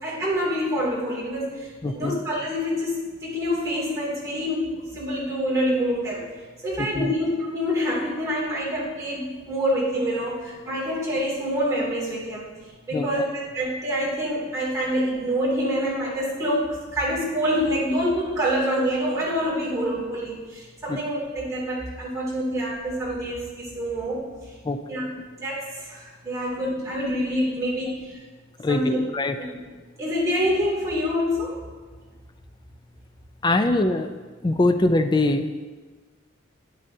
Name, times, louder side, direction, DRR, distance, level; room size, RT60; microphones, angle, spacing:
voice 1, 0.0-6.3 6.6-12.5 12.9-24.5 24.9-25.1 25.4-28.2 28.7-29.0 29.4-29.6 30.0-31.6, equal, 15° right, -7 dB, 2.6 m, -26 dB
voice 2, 1.8-2.2 6.8-7.1 12.9-13.1 20.9-21.0 24.6-24.8 28.6-29.4 33.4-34.1 34.4-35.7, left 2 dB, 20° left, 8 dB, 0.3 m, -23 dB
10.5 x 8.6 x 2.7 m, 1.4 s
head